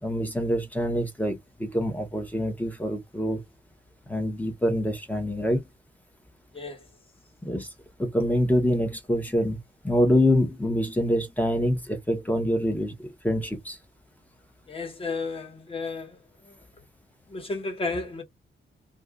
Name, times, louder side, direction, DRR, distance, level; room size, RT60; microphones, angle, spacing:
voice 1, 0.0-3.4 4.1-5.6 7.4-7.7 8.0-9.6 9.8-13.8, equal, 10° left, 0.9 m, -25 dB
voice 2, 14.7-16.2 16.5-16.6 17.3-18.2, left 3 dB, 25° left, 1.2 m, -33 dB
2.6 x 2.3 x 3.5 m
wide cardioid pair, 175°, 20 cm